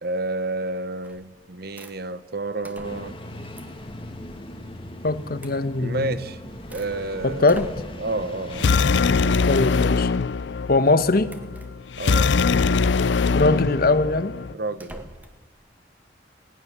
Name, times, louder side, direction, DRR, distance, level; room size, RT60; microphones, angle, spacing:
voice 1, 0.0-3.2 5.8-6.4 6.7-8.8 9.2-9.4 12.0-12.3 14.5-15.1, right 2 dB, 60° right, 13 dB, 1.1 m, -30 dB
sound 1, 1.0-1.4 1.8-2.0 2.6-3.2 3.5-3.9 5.4-5.6 6.2-7.0 7.5-8.1 9.3-9.6 11.3-11.7 13.0-13.3 14.7-15.4, right 1 dB, 10° right, 1.8 m, -44 dB
Engine starting, 2.8-9.1, left 1 dB, 30° left, 2.1 m, -39 dB
voice 2, 5.0-6.2 7.2-7.7 9.4-10.1 10.7-11.3 13.3-14.3, left 2 dB, 55° left, 13 dB, 1.1 m, -21 dB
sound 2, 8.5-14.5, left 4 dB, 80° left, 0.5 m, -22 dB
19.5 x 18.5 x 7.3 m, 1.3 s
head